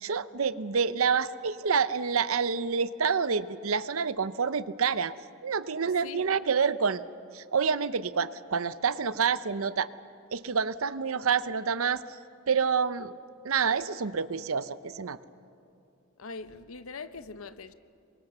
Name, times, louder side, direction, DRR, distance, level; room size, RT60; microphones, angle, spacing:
voice 1, 0.0-5.1 5.4-7.0 7.3-9.9 10.3-12.0 12.5-13.1 13.4-15.2, right 6 dB, 85° right, 15 dB, 0.7 m, -28 dB
voice 2, 16.2-17.7, left 4 dB, 85° left, 12 dB, 0.9 m, -42 dB
27.0 x 23.5 x 6.8 m, 2.5 s
head